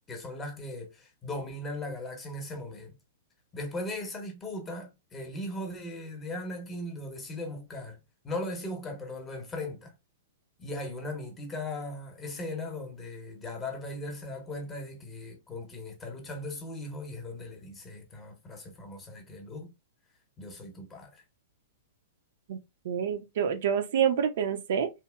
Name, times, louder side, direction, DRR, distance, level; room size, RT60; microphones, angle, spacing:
voice 1, 0.1-2.9 3.5-8.0 8.2-9.9 10.6-19.7 20.4-21.2, left 1 dB, 20° left, 0.8 m, -38 dB
voice 2, 22.8-24.9, right 8 dB, 60° right, 0.4 m, -27 dB
2.8 x 2.1 x 2.2 m
figure-of-eight pair, 105°, 0 cm